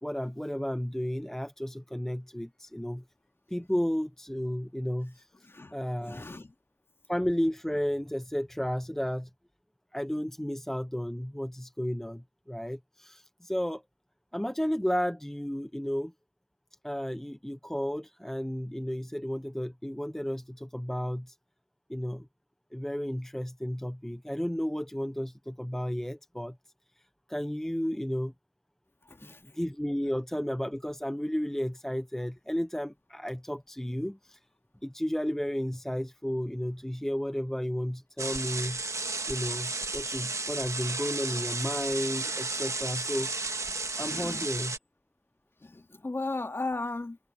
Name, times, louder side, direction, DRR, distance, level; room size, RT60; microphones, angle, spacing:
voice 1, 0.0-3.0 3.5-5.3 5.7-6.2 7.1-9.3 9.9-13.8 14.3-16.1 16.8-21.4 21.9-22.3 22.7-26.6 27.3-28.3 29.2-34.4 34.8-38.8 39.3-43.3 44.0-44.8, equal, 5° left, 0.9 m, -33 dB
voice 2, 5.4-6.5 29.0-29.6 44.0-44.5 45.6-47.2, left 2 dB, 30° left, 2.5 m, -37 dB
sound 1, 38.2-44.8, right 3 dB, 40° right, 1.9 m, -33 dB
wide cardioid pair, 75°, 8 cm